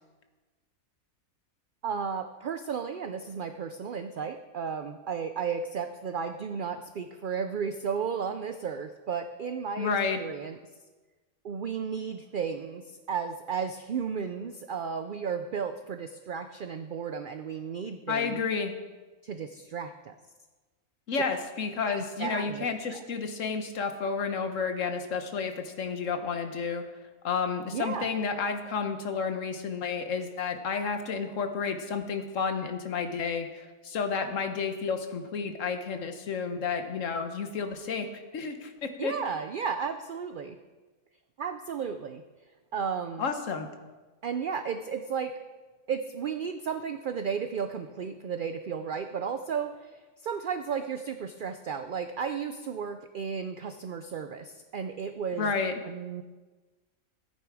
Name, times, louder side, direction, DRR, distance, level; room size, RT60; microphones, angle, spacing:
voice 1, 1.8-9.9 10.2-10.6 11.4-18.4 19.2-20.1 21.9-23.0 27.7-28.2 39.0-40.6 41.4-42.2 42.7-43.3 44.2-45.3 45.9-55.5 55.8-56.2, right 6 dB, 60° right, 8 dB, 0.5 m, -34 dB
voice 2, 9.8-10.2 18.1-18.7 21.1-26.8 27.2-38.1 38.3-39.1 43.2-43.7 55.4-55.7, left 5 dB, 65° left, 7 dB, 1.4 m, -31 dB
14.5 x 9.1 x 4.8 m, 1.3 s
omnidirectional pair, 1.5 m